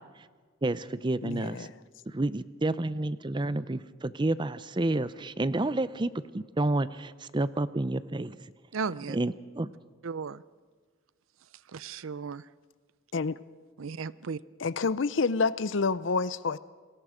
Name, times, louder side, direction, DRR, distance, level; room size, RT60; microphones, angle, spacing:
voice 1, 0.6-1.7 2.1-8.4 9.1-9.7, right 2 dB, 20° right, 16 dB, 0.5 m, -30 dB
voice 2, 1.2-1.7 13.1-13.4 14.6-16.6, left 4 dB, 65° left, 17 dB, 0.6 m, -28 dB
voice 3, 8.7-9.2 10.0-10.4 11.7-12.5 13.8-14.4, right 5 dB, 80° right, 18 dB, 0.6 m, -35 dB
28.0 x 21.0 x 5.0 m, 1.5 s
head